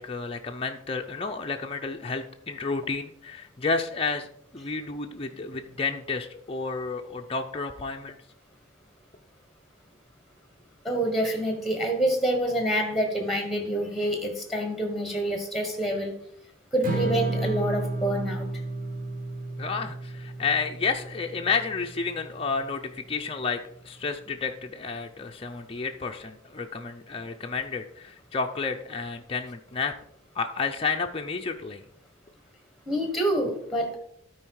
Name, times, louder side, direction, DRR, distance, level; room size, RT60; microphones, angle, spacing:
voice 1, 0.0-4.3 4.5-8.2 19.6-29.9 30.3-31.8, left 4 dB, 30° left, 3 dB, 0.5 m, -31 dB
voice 2, 10.8-16.1 16.7-18.4 32.9-34.0, right 1 dB, ahead, 4 dB, 1.4 m, -27 dB
Strum, 16.8-23.1, right 2 dB, 45° right, 1.3 m, -33 dB
12.0 x 4.7 x 4.7 m, 0.69 s
head